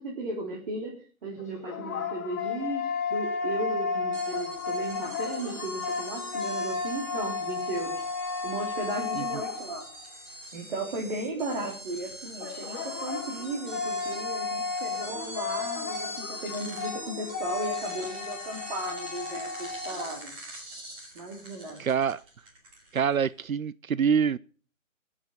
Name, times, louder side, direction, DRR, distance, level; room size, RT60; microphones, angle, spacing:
voice 1, 0.0-8.0 8.4-9.9 10.5-20.4 21.1-21.8, right 2 dB, 40° right, 3.9 m, -35 dB
sound 1, 1.4-10.1 12.4-20.1, left 5 dB, 10° left, 0.8 m, -33 dB
sound 2, 4.1-23.3, right 1 dB, 15° right, 2.5 m, -43 dB
voice 2, 21.8-22.2 22.9-24.4, right 7 dB, 85° right, 0.6 m, -25 dB
20.0 x 7.4 x 5.7 m
figure-of-eight pair, 145°, 41 cm